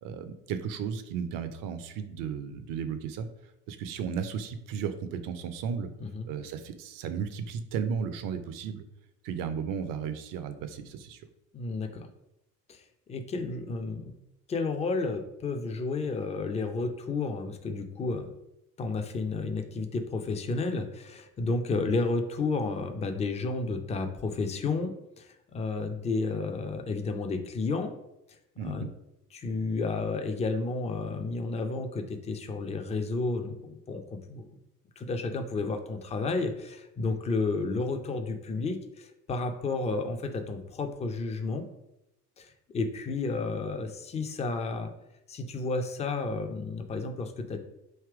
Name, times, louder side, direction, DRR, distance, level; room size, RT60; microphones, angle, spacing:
voice 1, 0.0-3.3 3.7-5.9 6.3-8.8 9.2-11.2 28.6-28.9, right 7 dB, 45° right, 10 dB, 0.6 m, -34 dB
voice 2, 11.5-12.1 12.7-12.8 13.1-14.1 14.5-18.3 18.8-27.9 28.6-28.9 29.3-34.6 35.0-41.6 42.4-44.9 45.3-47.6, left 3 dB, 15° left, 6 dB, 0.5 m, -31 dB
3.4 x 2.9 x 4.6 m, 0.87 s
hypercardioid pair, 65°, 47 cm